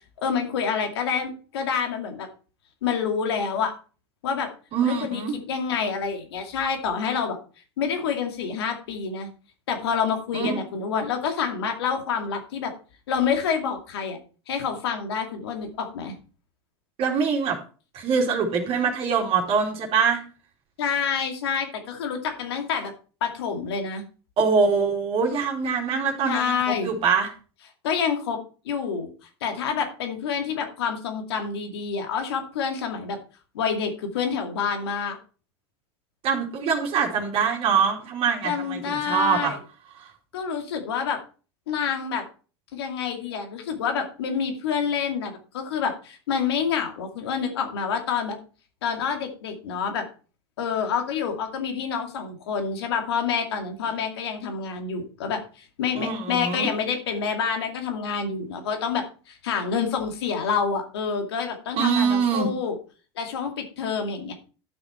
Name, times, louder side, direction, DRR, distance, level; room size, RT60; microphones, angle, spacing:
voice 1, 0.2-2.3 2.8-3.7 4.2-4.5 4.9-7.4 7.8-9.3 9.7-12.7 13.1-14.2 14.5-16.2 20.8-22.9 23.2-24.0 26.3-26.9 27.8-28.4 28.6-29.1 29.4-33.2 33.5-35.2 38.4-39.6 40.3-41.2 41.7-42.2 42.7-48.4 48.8-50.1 50.6-62.7 63.2-64.3, left 6 dB, 75° left, 4 dB, 2.5 m, -27 dB
voice 2, 4.7-5.3 10.3-10.6 17.0-17.6 17.9-20.2 24.4-27.3 36.2-39.5 40.0-40.1 56.0-56.7 61.8-62.5, right 5 dB, 45° right, 1 dB, 2.8 m, -24 dB
12.0 x 6.1 x 4.4 m, 0.36 s
hypercardioid pair, 90°, 13 cm